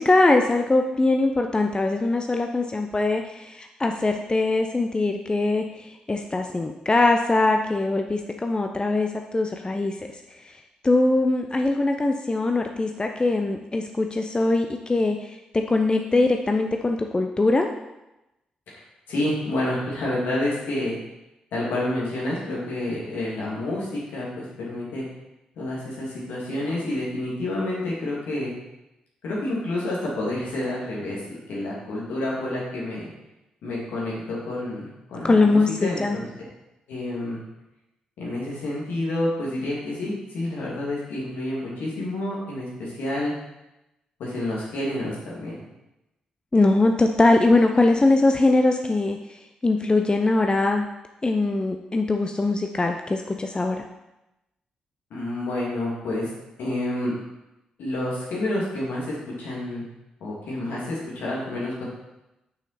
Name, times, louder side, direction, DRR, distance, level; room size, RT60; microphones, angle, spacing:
voice 1, 0.0-10.0 10.8-15.4 15.7-17.7 35.2-36.2 46.5-49.4 49.6-50.9 51.2-53.8, left 2 dB, 25° left, 4 dB, 0.7 m, -22 dB
voice 2, 18.7-21.0 21.5-25.0 25.6-28.5 29.2-33.1 33.6-36.3 36.9-37.4 38.2-43.3 44.2-45.6 55.1-56.3 56.6-57.1 57.8-59.9 60.2-61.8, left 1 dB, 75° left, -5 dB, 2.7 m, -29 dB
6.5 x 6.1 x 4.3 m, 0.94 s
hypercardioid pair, 40°, 3 cm